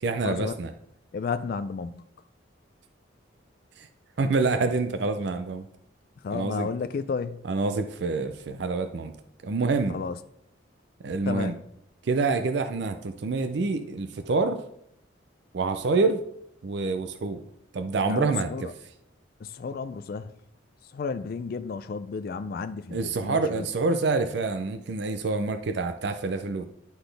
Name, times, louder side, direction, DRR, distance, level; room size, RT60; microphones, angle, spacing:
voice 1, 0.0-0.7 3.8-3.9 4.2-5.7 6.3-6.7 7.4-9.2 9.4-9.9 11.0-11.5 12.0-14.6 15.5-16.2 16.6-17.4 17.7-18.7 22.9-26.6, right 3 dB, 60° right, 0.4 m, -27 dB
voice 2, 1.1-2.0 6.2-7.4 9.9-10.2 11.3-11.6 18.1-18.7 19.4-20.3 20.9-23.7, left 5 dB, 50° left, 0.3 m, -32 dB
11.0 x 4.0 x 3.3 m
head